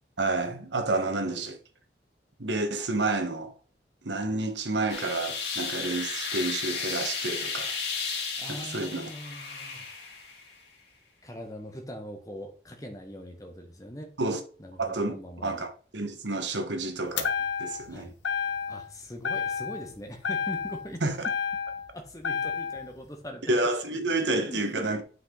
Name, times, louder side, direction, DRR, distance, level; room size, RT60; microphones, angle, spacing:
voice 1, 0.2-1.6 2.4-3.5 4.0-7.7 8.5-9.1 14.2-14.4 14.8-15.1 15.4-17.3 17.6-18.1 21.0-21.3 23.5-25.0, right 2 dB, 85° right, 1.4 m, -29 dB
voice 2, 1.1-1.4 4.2-4.3 8.4-9.9 11.2-14.1 14.6-15.7 17.9-18.1 18.7-21.3 21.9-23.4 23.9-24.9, equal, 20° left, 1.4 m, -42 dB
sound 1, 4.9-10.5, left 5 dB, 70° left, 3.3 m, -34 dB
sound 2, 17.2-17.9 18.2-18.9 19.2-19.9 20.2-21.9 22.2-22.9, left 7 dB, 90° left, 1.1 m, -30 dB
9.0 x 5.7 x 3.9 m
head